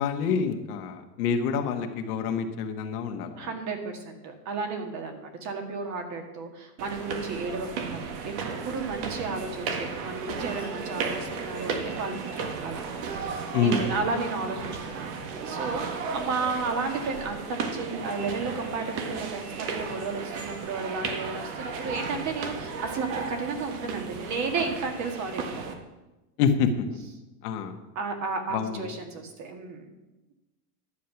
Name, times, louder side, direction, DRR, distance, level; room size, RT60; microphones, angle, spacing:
voice 1, 0.0-3.5 13.5-13.8 26.4-26.8 27.4-27.8 28.5-28.8, left 6 dB, 75° left, 5 dB, 1.5 m, -27 dB
voice 2, 3.4-8.3 8.6-25.7 27.9-29.9, right 4 dB, 35° right, 5 dB, 1.8 m, -33 dB
sound 1, 6.8-25.7, right 5 dB, 55° right, 1.7 m, -34 dB
11.5 x 7.5 x 5.8 m, 1.1 s
supercardioid pair, 140°, 47 cm